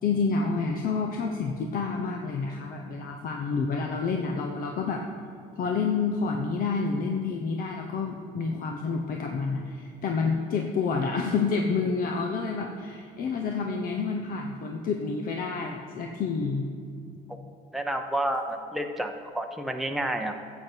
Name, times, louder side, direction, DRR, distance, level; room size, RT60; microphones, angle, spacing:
voice 1, 0.0-5.0 5.6-16.7, left 4 dB, 55° left, 3 dB, 0.9 m, -29 dB
voice 2, 17.7-20.3, right 1 dB, ahead, 4 dB, 0.8 m, -30 dB
14.5 x 8.2 x 4.5 m, 2.4 s
cardioid pair, 110°, 17 cm